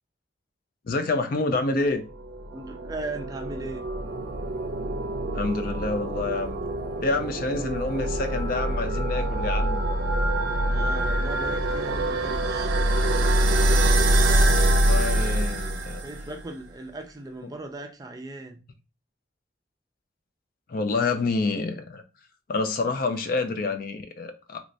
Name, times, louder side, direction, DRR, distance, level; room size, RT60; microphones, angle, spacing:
voice 1, 0.9-2.0 5.3-6.6 7.0-9.8 14.6-16.0 20.7-22.0 22.5-24.6, left 3 dB, 50° left, 0.4 m, -28 dB
sound 1, 2.2-16.4, right 1 dB, 75° right, 0.5 m, -25 dB
voice 2, 2.5-3.9 10.6-12.8 15.1-15.5 16.0-18.6, right 2 dB, 20° right, 0.4 m, -38 dB
3.2 x 3.0 x 2.6 m
head